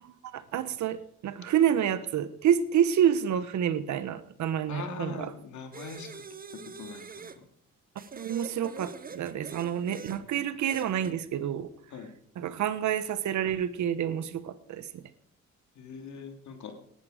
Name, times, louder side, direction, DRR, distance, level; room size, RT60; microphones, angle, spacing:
voice 1, 0.3-5.3 8.1-11.7 12.4-14.8, right 9 dB, 70° right, 14 dB, 1.2 m, -28 dB
voice 2, 4.7-7.4 9.8-9.9 11.9-12.1 15.7-16.7, left 5 dB, 70° left, 5 dB, 2.9 m, -42 dB
sound 1, 5.7-7.4 8.0-10.2 10.7-11.2, right 5 dB, 30° right, 0.9 m, -44 dB
18.5 x 11.0 x 5.1 m, 0.70 s
cardioid pair, 90°, 30 cm